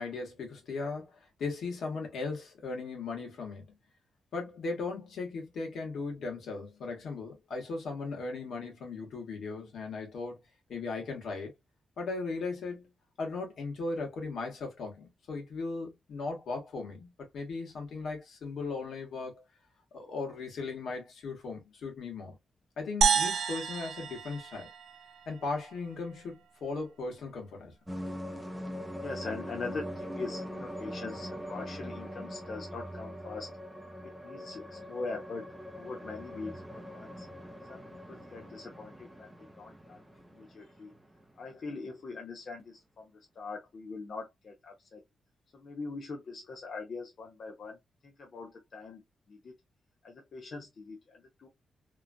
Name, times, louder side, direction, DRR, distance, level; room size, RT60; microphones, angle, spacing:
voice 1, 0.0-3.8 4.3-10.4 10.7-11.5 12.0-12.9 13.2-19.4 19.9-22.4 22.8-24.7 25.3-27.7, left 3 dB, 75° left, 1.3 m, -37 dB
sound 1, 23.0-25.4, right 6 dB, 75° right, 0.5 m, -29 dB
sound 2, 27.9-41.2, equal, 5° right, 0.7 m, -42 dB
voice 2, 29.0-33.5 34.2-37.3 37.7-40.0 40.3-40.9 41.4-45.0 45.5-47.8 48.0-49.0 49.3-49.6 50.0-51.5, left 3 dB, 55° left, 0.8 m, -42 dB
3.0 x 2.4 x 2.4 m
cardioid pair, 120°, 0 cm